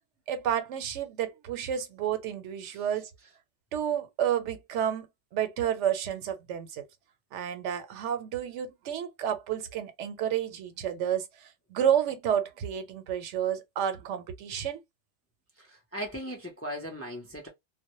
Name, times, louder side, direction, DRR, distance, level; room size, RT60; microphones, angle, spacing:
voice 1, 0.3-3.1 3.7-6.8 7.3-14.8, right 9 dB, 85° right, 0.9 m, -30 dB
voice 2, 15.6-17.5, equal, 20° left, 0.4 m, -38 dB
2.1 x 2.0 x 2.8 m
omnidirectional pair, 1.2 m